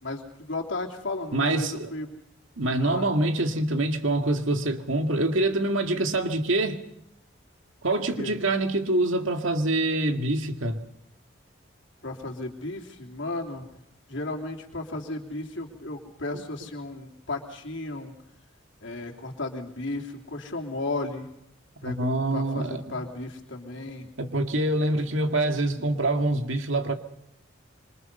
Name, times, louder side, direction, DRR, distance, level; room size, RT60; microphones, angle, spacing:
voice 1, 0.0-2.2 2.8-3.1 7.9-8.3 12.0-13.6 14.1-18.1 18.8-21.3 21.8-24.1, left 2 dB, 65° left, 3.1 m, -34 dB
voice 2, 1.3-1.9 2.6-6.8 7.8-10.8 16.3-16.4 21.8-22.8 24.2-27.0, right 2 dB, 75° right, 2.1 m, -25 dB
26.5 x 26.0 x 5.5 m
head